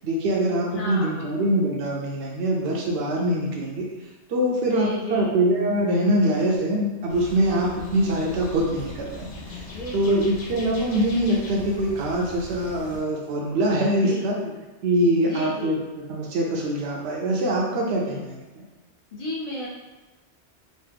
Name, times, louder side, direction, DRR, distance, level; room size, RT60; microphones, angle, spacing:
voice 1, 0.0-3.8 4.3-9.4 9.9-14.4 14.8-15.8 16.1-18.4, right 1 dB, 70° right, -2 dB, 0.8 m, -23 dB
voice 2, 0.7-1.4 4.7-5.4 9.7-10.3 13.9-14.6 15.2-15.8 17.9-18.3 19.1-19.7, left 2 dB, 40° left, -5 dB, 0.6 m, -34 dB
sound 1, 7.1-13.0, left 1 dB, 80° left, 1.0 m, -39 dB
3.1 x 2.0 x 3.3 m, 1.2 s
omnidirectional pair, 1.2 m